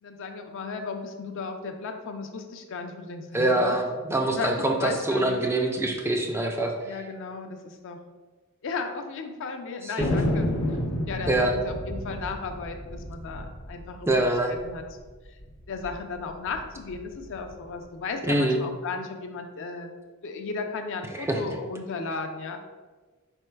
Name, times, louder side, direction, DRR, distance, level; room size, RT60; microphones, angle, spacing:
voice 1, 0.0-3.8 4.3-5.4 6.8-8.0 8.6-10.5 10.9-14.2 14.5-14.8 15.7-19.9 20.2-22.6, left 4 dB, 60° left, 5 dB, 0.4 m, -35 dB
voice 2, 3.3-7.0 9.8-10.1 11.3-11.5 14.1-14.5 18.2-18.6 21.2-21.4, right 2 dB, 10° right, 2 dB, 0.3 m, -25 dB
Thunder, 10.0-14.8 15.1-15.2 15.4-15.9 16.4-17.6, left 1 dB, 90° left, 0.8 m, -30 dB
4.5 x 4.4 x 2.2 m, 1.3 s
head